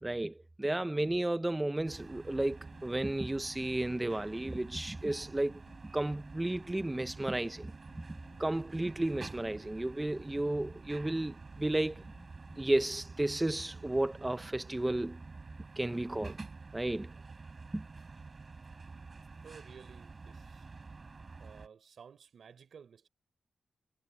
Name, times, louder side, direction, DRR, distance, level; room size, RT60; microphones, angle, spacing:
voice 1, 0.0-5.6 5.9-7.7 8.4-12.0 12.6-15.2 15.8-16.3 16.7-17.1 17.7-17.8, right 1 dB, 10° right, 0.5 m, -33 dB
sound 1, 1.8-12.6, left 4 dB, 35° left, 4.8 m, -61 dB
sound 2, 1.8-21.7, right 4 dB, 35° right, 5.4 m, -49 dB
voice 2, 19.4-20.7 21.4-23.1, right 7 dB, 80° right, 4.8 m, -54 dB
wide cardioid pair, 180°, 0 cm